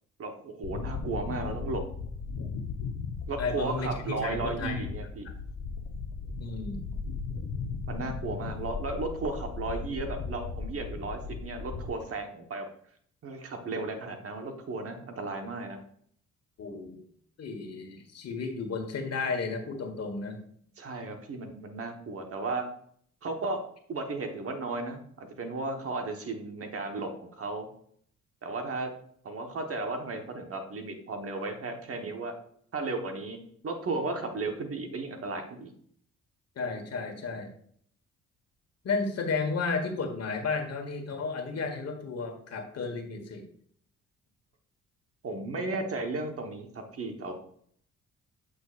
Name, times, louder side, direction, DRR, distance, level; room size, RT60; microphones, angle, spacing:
voice 1, 0.2-1.9 3.3-5.3 7.9-12.7 13.2-15.8 20.8-22.6 23.2-23.6 23.9-27.7 28.4-28.9 29.2-32.3 32.7-35.7 45.2-47.3, right 3 dB, 50° right, 5 dB, 1.3 m, -34 dB
sound 1, 0.6-11.9, left 4 dB, 75° left, 0.9 m, -37 dB
voice 2, 3.4-4.8 6.4-6.8 16.6-17.0 17.4-20.4 36.5-37.5 38.8-43.4, left 4 dB, 55° left, 4 dB, 1.5 m, -33 dB
8.1 x 6.3 x 2.5 m, 0.63 s
cardioid pair, 90°, 30 cm